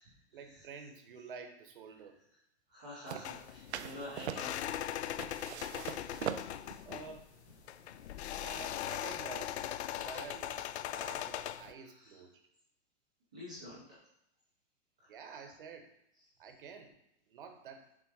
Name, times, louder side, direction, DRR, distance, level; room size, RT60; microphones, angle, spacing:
voice 1, 0.3-2.2 6.8-7.3 8.4-9.6 10.0-10.6 10.9-12.4 15.1-15.9 16.4-17.0 17.3-17.9, right 5 dB, 55° right, 6 dB, 1.0 m, -49 dB
voice 2, 2.7-4.7 13.3-14.0, left 1 dB, 5° right, -10 dB, 0.3 m, -47 dB
sound 1, 3.1-8.4, right 9 dB, 80° right, 0.6 m, -43 dB
sound 2, 3.2-11.7, left 11 dB, 80° left, 0.5 m, -40 dB
6.2 x 3.5 x 4.7 m, 0.80 s
hypercardioid pair, 165°, 33 cm